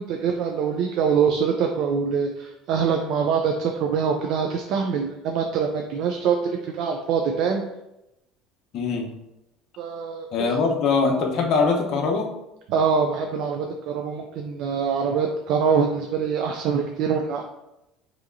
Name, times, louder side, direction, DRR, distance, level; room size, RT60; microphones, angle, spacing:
voice 1, 0.0-7.6 9.8-10.3 12.7-17.4, right 6 dB, 65° right, 3 dB, 0.4 m, -24 dB
voice 2, 8.7-9.1 10.3-12.3, left 4 dB, 55° left, 1 dB, 0.8 m, -22 dB
4.8 x 2.9 x 2.6 m, 0.91 s
supercardioid pair, 115°, 0 cm